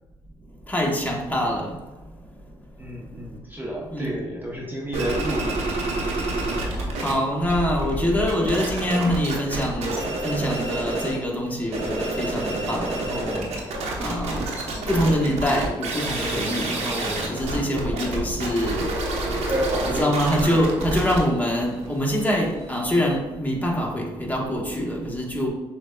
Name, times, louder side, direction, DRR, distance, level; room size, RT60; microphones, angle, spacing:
voice 1, 0.7-1.8 3.9-4.1 7.0-13.5 14.0-14.4 14.9-18.9 19.8-25.5, equal, 15° left, -2 dB, 1.0 m, -25 dB
voice 2, 2.8-5.7 6.3-6.7 19.4-20.1, right 1 dB, 15° right, -3 dB, 0.7 m, -30 dB
sound 1, 4.9-7.1 7.4-11.2 11.6-23.2, right 2 dB, 75° right, 0.8 m, -28 dB
6.2 x 2.2 x 2.2 m, 1.1 s
supercardioid pair, 65°, 11 cm